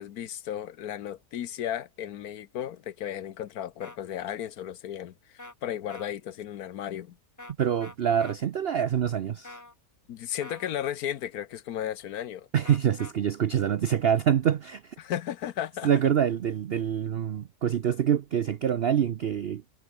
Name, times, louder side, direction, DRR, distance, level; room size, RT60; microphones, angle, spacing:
voice 1, 0.0-7.2 10.1-12.5 15.0-15.9, left 10 dB, 65° left, 1.2 m, -34 dB
sound 1, 3.8-4.0 5.4-5.5 5.9-6.1 7.4-7.5 7.8-8.4 9.4-9.7 10.4-10.7 12.6-13.1, left 2 dB, 10° left, 1.2 m, -44 dB
voice 2, 7.6-9.6 12.5-14.9 15.8-19.6, right 9 dB, 85° right, 0.5 m, -25 dB
omnidirectional pair, 1.8 m